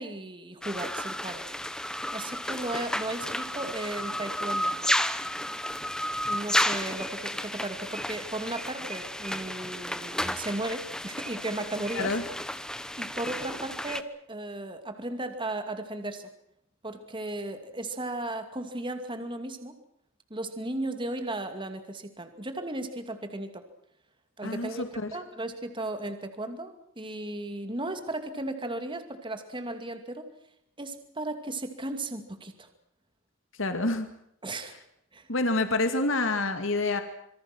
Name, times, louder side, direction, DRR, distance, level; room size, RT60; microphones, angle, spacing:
voice 1, 0.0-1.4 2.1-4.7 6.3-12.1 13.0-16.3 16.8-19.7 20.3-23.6 24.4-30.3 30.8-32.7 34.4-34.8 35.1-35.3, right 2 dB, 25° right, 7 dB, 2.5 m, -35 dB
sound 1, 0.6-14.0, left 1 dB, 5° left, 1.0 m, -32 dB
voice 2, 24.4-25.1 33.6-34.1 35.3-37.0, left 2 dB, 70° left, 7 dB, 2.2 m, -27 dB
27.0 x 23.5 x 6.1 m, 0.75 s
head